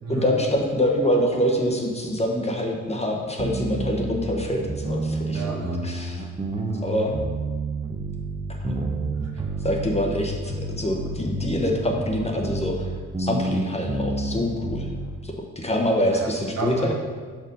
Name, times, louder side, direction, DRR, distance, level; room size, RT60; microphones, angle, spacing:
voice 1, 0.1-5.5 5.8-6.3 6.8-7.1 8.6-8.8 9.6-12.9 13.2-14.9 15.2-16.9, equal, 20° left, 1 dB, 1.0 m, -25 dB
sound 1, 3.4-15.2, right 2 dB, 20° right, 0.8 m, -30 dB
voice 2, 5.3-5.8 6.6-6.8 9.1-9.6 16.0-16.3 16.6-16.9, right 4 dB, 60° right, 0 dB, 1.4 m, -32 dB
5.9 x 4.5 x 5.3 m, 1.5 s
cardioid pair, 90°, 30 cm